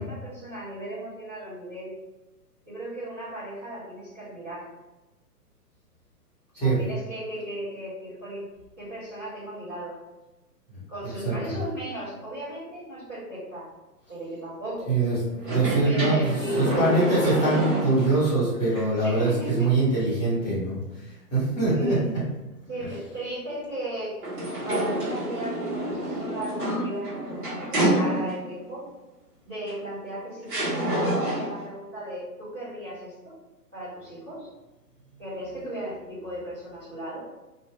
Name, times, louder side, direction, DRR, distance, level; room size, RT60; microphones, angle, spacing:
voice 1, 0.0-2.0 2.7-4.6 6.5-8.5 8.8-9.9 10.9-13.7 14.1-14.9 15.8-16.8 19.0-19.7 21.7-22.1 22.7-28.8 29.4-33.3 33.7-34.5 35.2-37.2, right 1 dB, 10° right, -17 dB, 0.5 m, -36 dB
voice 2, 11.2-11.6 14.9-22.2, right 2 dB, 15° left, -10 dB, 1.2 m, -24 dB
sound 1, 15.4-18.3 18.8-18.9 24.2-28.6 29.7-29.8 30.5-31.7, right 1 dB, 30° right, 1.1 m, -27 dB
2.8 x 2.4 x 2.7 m, 1.1 s
figure-of-eight pair, 125°, 48 cm